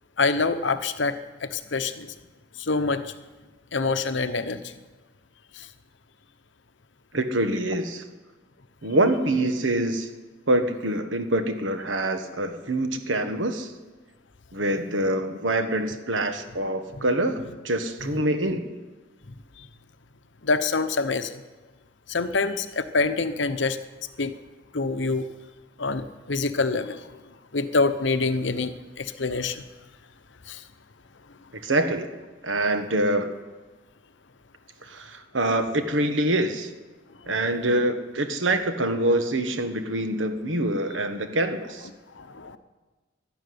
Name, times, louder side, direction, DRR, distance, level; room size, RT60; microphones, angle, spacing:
voice 1, 0.2-2.1 2.6-3.1 3.7-4.7 5.5-5.7 18.0-18.2 19.3-19.7 20.4-21.4 22.1-23.8 24.2-24.3 24.7-25.3 25.8-27.1 27.5-29.6 30.5-30.6 42.2-42.6, left 3 dB, 70° left, 10 dB, 0.9 m, -26 dB
voice 2, 7.1-8.1 8.8-10.1 10.5-13.7 14.5-18.7 31.5-32.1 32.4-33.3 34.8-36.7 37.3-41.9, right 1 dB, 80° right, 8 dB, 1.5 m, -25 dB
12.0 x 12.0 x 9.5 m, 1.3 s
head